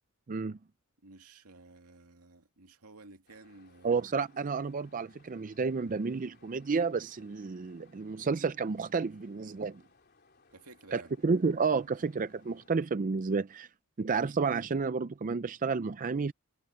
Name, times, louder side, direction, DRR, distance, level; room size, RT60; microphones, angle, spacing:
voice 1, 0.3-0.6 3.8-9.8 10.9-13.7 14.0-16.3, right 4 dB, 35° right, 0.4 m, -31 dB
voice 2, 1.0-4.0 10.5-11.1, right 3 dB, 85° right, 2.4 m, -54 dB
sound 1, 3.3-12.7, left 4 dB, 45° left, 3.7 m, -64 dB
head